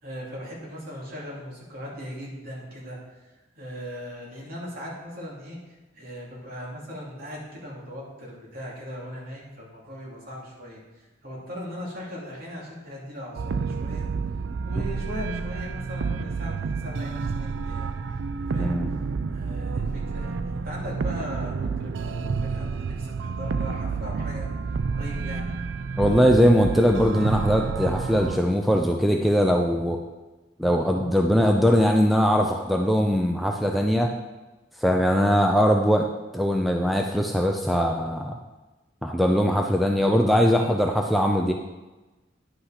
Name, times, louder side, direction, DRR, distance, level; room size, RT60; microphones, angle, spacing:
voice 1, 0.0-3.0 3.6-14.1 14.6-18.2 18.5-19.0 19.3-24.5 25.0-25.5, equal, 50° right, -3 dB, 2.7 m, -39 dB
sound 1, 13.3-28.4, right 4 dB, 70° right, 0.4 m, -29 dB
voice 2, 18.6-18.9 26.0-30.0 30.6-34.1 34.8-36.1 36.3-38.4 39.0-41.5, equal, ahead, 2 dB, 0.5 m, -21 dB
10.0 x 5.6 x 5.8 m, 1.1 s
head